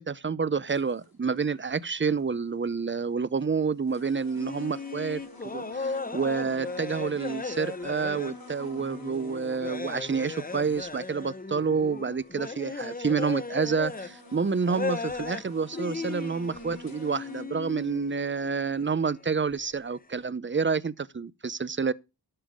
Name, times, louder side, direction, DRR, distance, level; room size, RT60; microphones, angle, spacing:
voice 1, 0.0-21.9, right 5 dB, 25° right, 0.6 m, -29 dB
sound 1, 0.7-1.1 2.7-2.8 3.4-3.5 3.9-11.2 11.5-11.6 12.2-13.1 13.7-17.4, left 2 dB, 55° left, 3.4 m, -49 dB
sound 2, 4.4-14.3 14.6-15.5 15.7-19.0 19.3-19.5, left 4 dB, 20° left, 0.7 m, -37 dB
11.5 x 6.7 x 5.2 m
wide cardioid pair, 50°, 43 cm